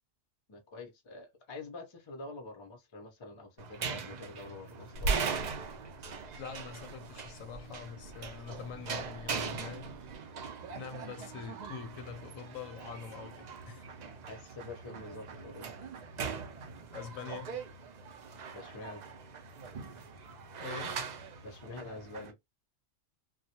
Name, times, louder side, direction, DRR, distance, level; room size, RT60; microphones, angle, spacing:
voice 1, 0.5-5.2 14.3-15.7 18.5-19.1 21.4-22.4, left 2 dB, 45° left, 0.3 m, -46 dB
sound 1, 3.6-22.3, right 6 dB, 90° right, 0.3 m, -41 dB
Growling / Hiss, 4.9-10.2, right 2 dB, 75° right, 0.9 m, -41 dB
voice 2, 6.4-10.0 10.7-13.8 16.9-17.6 20.6-21.1, left 6 dB, 85° left, 1.0 m, -44 dB
2.2 x 2.0 x 2.7 m
omnidirectional pair, 1.3 m